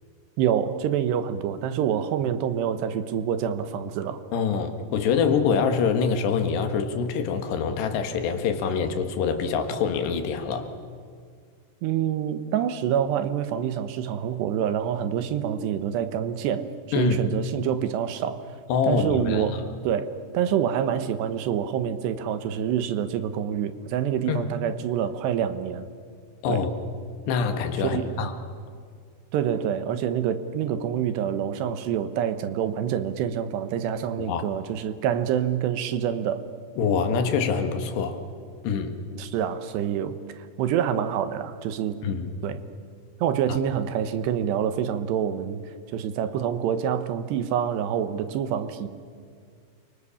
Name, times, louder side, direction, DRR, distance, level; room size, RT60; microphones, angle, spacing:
voice 1, 0.4-4.2 11.8-16.7 17.0-18.5 18.8-25.9 26.5-26.7 27.8-28.3 29.3-36.4 39.2-42.0 42.4-42.6 43.2-45.6 45.9-48.9, right 9 dB, 80° right, 11 dB, 3.3 m, -27 dB
voice 2, 4.3-10.7 16.9-17.2 18.7-19.5 24.3-24.5 26.4-26.7 27.3-28.3 34.2-34.4 36.8-38.2 38.6-39.0 42.0-42.3 43.5-43.6, left 6 dB, 80° left, 6 dB, 3.8 m, -25 dB
29.0 x 24.5 x 7.2 m, 2.1 s
omnidirectional pair, 4.8 m